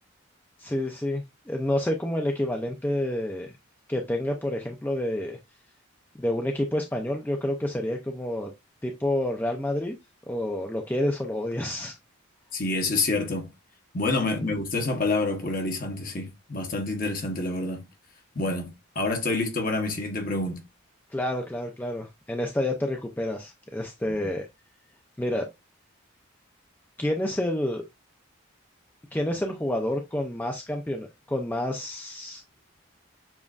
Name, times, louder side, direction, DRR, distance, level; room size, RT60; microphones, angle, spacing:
voice 1, 0.6-3.5 3.9-5.4 6.2-8.5 8.8-10.0 10.3-12.0 14.2-14.5 21.1-24.5 25.2-25.5 27.0-27.9 29.1-32.4, left 1 dB, 10° left, 0.4 m, -29 dB
voice 2, 12.5-13.5 13.9-17.9 18.3-20.6, left 2 dB, 40° left, 1.0 m, -28 dB
7.1 x 2.5 x 2.4 m
head